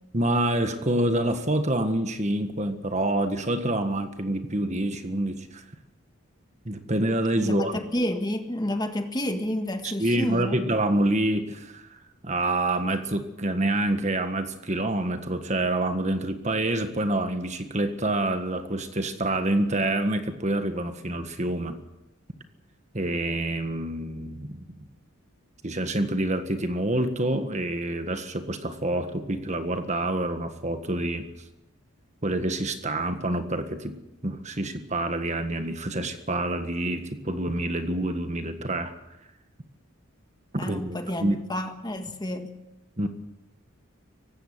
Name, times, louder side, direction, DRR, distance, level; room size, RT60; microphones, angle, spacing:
voice 1, 0.1-5.6 6.6-7.8 9.8-11.8 12.2-21.8 22.9-24.6 25.6-31.3 32.2-34.0 34.2-38.9 40.5-41.4 43.0-43.1, right 1 dB, 35° right, 8 dB, 1.6 m, -27 dB
voice 2, 7.4-10.6 40.6-42.6, left 1 dB, 20° left, 6 dB, 1.7 m, -30 dB
19.0 x 16.0 x 9.6 m, 0.92 s
head